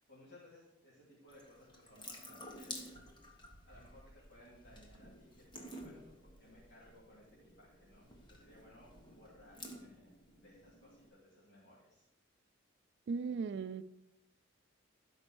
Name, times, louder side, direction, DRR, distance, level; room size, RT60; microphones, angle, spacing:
voice 1, 0.0-3.0 3.6-6.0 6.4-12.0, left 1 dB, 60° left, -9 dB, 2.8 m, -61 dB
Water tap faucet / Sink (filling or washing) / Drip, 1.3-11.1, left 1 dB, 25° left, 1.3 m, -52 dB
voice 2, 13.1-13.8, right 5 dB, 60° right, 14 dB, 0.3 m, -37 dB
12.5 x 5.3 x 4.6 m, 0.88 s
head